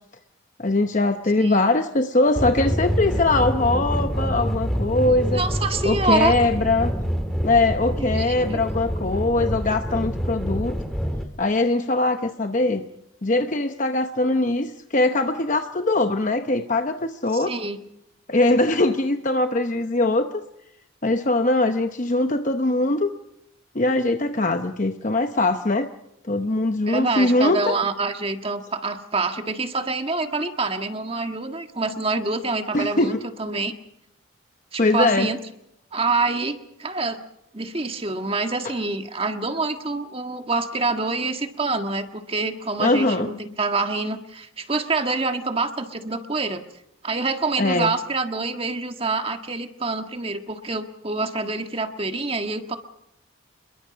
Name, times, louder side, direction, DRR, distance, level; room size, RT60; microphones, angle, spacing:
voice 1, 0.6-5.4 5.8-6.9 7.4-10.8 11.4-12.9 13.2-17.5 18.3-20.3 21.0-23.1 23.7-25.9 26.3-27.8 32.7-33.2 34.8-35.3 42.8-43.3 47.6-47.9, left 2 dB, 35° left, 7 dB, 0.9 m, -21 dB
sound 1, 2.3-11.2, equal, ahead, 1.8 m, -26 dB
voice 2, 5.3-6.3 8.0-8.6 17.3-17.8 26.9-33.7 34.7-35.4 35.9-37.2 37.5-46.6 47.0-52.8, right 3 dB, 25° right, 6 dB, 1.6 m, -26 dB
28.0 x 22.5 x 5.2 m, 0.80 s
head